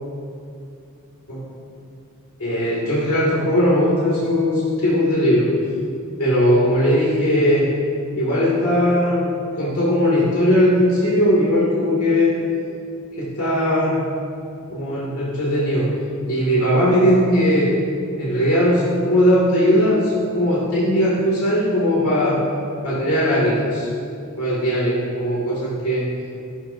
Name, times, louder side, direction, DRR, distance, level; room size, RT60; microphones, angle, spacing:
voice 1, 2.4-5.5 6.2-7.7 8.1-9.3 9.6-12.4 13.2-14.0 14.7-15.9 16.3-17.8 18.2-22.4 22.8-23.9 24.4-26.1, equal, 85° left, -8 dB, 2.9 m, -19 dB
15.0 x 13.0 x 2.9 m, 2.5 s
head